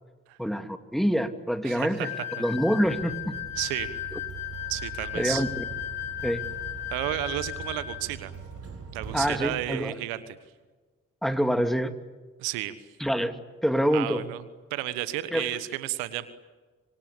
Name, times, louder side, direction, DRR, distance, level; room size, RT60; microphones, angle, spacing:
voice 1, 0.4-2.1 2.4-3.3 4.1-4.2 5.1-5.6 6.2-6.4 9.1-9.9 11.2-11.9 13.0-13.4 13.6-14.2 15.3-15.5, equal, ahead, 8 dB, 2.6 m, -26 dB
voice 2, 1.6-2.1 3.6-3.9 4.7-5.4 6.9-8.3 8.9-10.4 12.4-12.7 13.9-14.4 14.7-16.3, right 15 dB, 80° right, 14 dB, 1.3 m, -32 dB
sound 1, 2.0-8.1, left 13 dB, 70° left, 3.9 m, -36 dB
sound 2, 2.8-9.5, right 5 dB, 60° right, 7.7 m, -42 dB
Sliding door, 5.4-10.3, right 3 dB, 40° right, 4.7 m, -55 dB
25.5 x 25.5 x 8.7 m, 1.3 s
hypercardioid pair, 40°, 36 cm